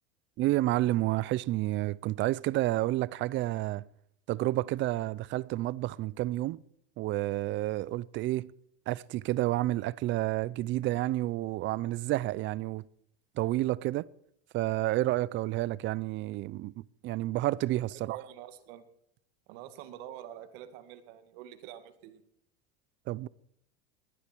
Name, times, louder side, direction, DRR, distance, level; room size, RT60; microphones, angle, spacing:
voice 1, 0.4-3.8 4.3-6.6 7.0-8.5 8.9-12.8 13.4-14.1 14.5-18.2 23.1-23.3, right 16 dB, 35° right, 0.5 m, -30 dB
voice 2, 18.0-18.8 19.5-22.2, right 11 dB, 65° right, 2.2 m, -46 dB
19.5 x 11.5 x 4.6 m
supercardioid pair, 130°, 32 cm